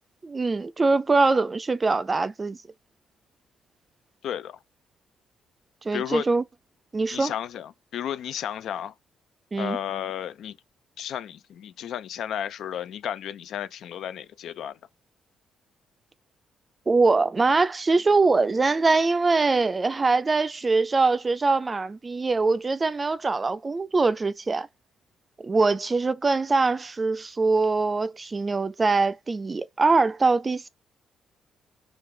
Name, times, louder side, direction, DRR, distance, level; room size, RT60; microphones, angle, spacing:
voice 1, 0.2-2.6 5.8-6.4 6.9-7.3 9.5-9.8 16.9-24.7 25.4-30.7, right 3 dB, 30° right, 0.4 m, -23 dB
voice 2, 4.2-4.6 5.9-6.3 7.1-8.9 9.6-10.6 11.0-14.8, left 10 dB, 75° left, 0.3 m, -33 dB
3.1 x 2.4 x 3.2 m
cardioid pair, 90°, 0 cm